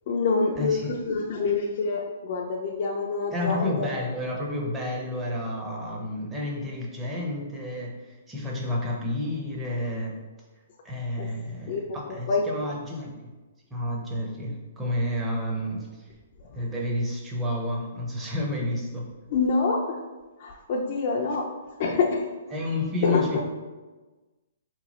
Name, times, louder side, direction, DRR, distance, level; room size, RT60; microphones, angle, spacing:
voice 1, 0.1-4.1 11.2-11.3 11.7-11.9 12.3-12.5 16.4-16.6 19.3-20.0 20.4-21.5 21.8-22.3 23.0-23.4, left 4 dB, 45° left, -1 dB, 0.4 m, -26 dB
voice 2, 0.6-0.9 3.3-10.2 10.8-13.3 13.7-16.1 16.5-19.0 22.5-23.4, left 1 dB, 10° right, -2 dB, 0.7 m, -30 dB
3.0 x 2.2 x 4.0 m, 1.2 s
hypercardioid pair, 145°, 0 cm